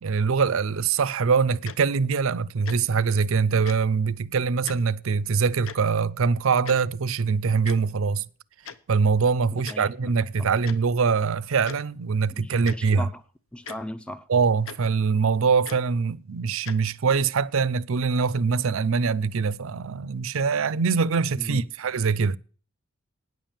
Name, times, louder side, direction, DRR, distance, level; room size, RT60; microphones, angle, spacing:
voice 1, 0.0-8.3 8.9-13.0 14.3-22.4, right 5 dB, 70° right, 0.5 m, -23 dB
Tick-tock, 1.6-1.8 2.6-2.8 3.6-3.8 4.6-4.8 5.6-5.8 6.7-6.8 7.6-7.8 8.6-8.8 9.6-9.8 10.6-10.8 11.6-11.8 12.6-12.8 13.6-13.8 14.6-14.8 15.6-15.8 16.6-16.8, left 6 dB, 70° left, 0.7 m, -38 dB
voice 2, 9.5-10.5 12.3-13.2 13.5-14.3 21.3-21.7, left 1 dB, 5° left, 0.5 m, -38 dB
9.6 x 7.3 x 9.0 m
head